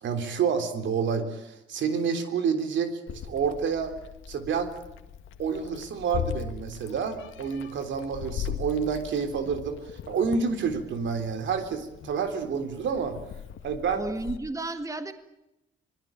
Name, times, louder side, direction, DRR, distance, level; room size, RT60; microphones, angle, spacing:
voice 1, 0.0-3.9 4.3-4.8 5.4-9.8 10.1-13.2 13.6-14.0, right 6 dB, 70° right, 8 dB, 3.6 m, -28 dB
Meow, 3.1-14.4, left 9 dB, 75° left, 2.0 m, -39 dB
voice 2, 14.0-15.1, right 2 dB, 15° right, 9 dB, 1.9 m, -32 dB
25.5 x 20.0 x 8.9 m, 0.90 s
cardioid pair, 90°, 20 cm